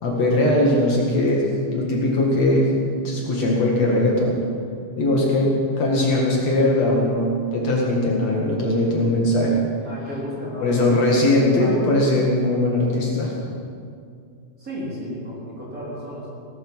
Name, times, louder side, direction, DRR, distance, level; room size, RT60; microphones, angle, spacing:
voice 1, 0.0-1.5 1.7-2.7 3.0-4.4 5.0-9.6 10.6-13.3, left 1 dB, 60° left, -2 dB, 3.0 m, -20 dB
voice 2, 9.8-10.7 11.0-11.8 14.6-16.3, equal, 25° right, -7 dB, 4.3 m, -34 dB
18.5 x 13.0 x 5.6 m, 2.3 s
omnidirectional pair, 3.7 m